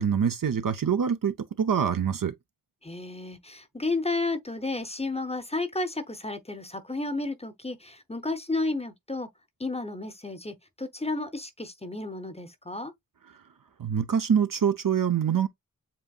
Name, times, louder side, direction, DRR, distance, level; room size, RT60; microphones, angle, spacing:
voice 1, 0.0-2.3 13.8-15.5, right 7 dB, 65° right, 0.7 m, -25 dB
voice 2, 2.8-9.3 9.6-12.9, left 2 dB, 20° left, 0.7 m, -32 dB
7.5 x 2.8 x 2.3 m
wide cardioid pair, 60°, 35 cm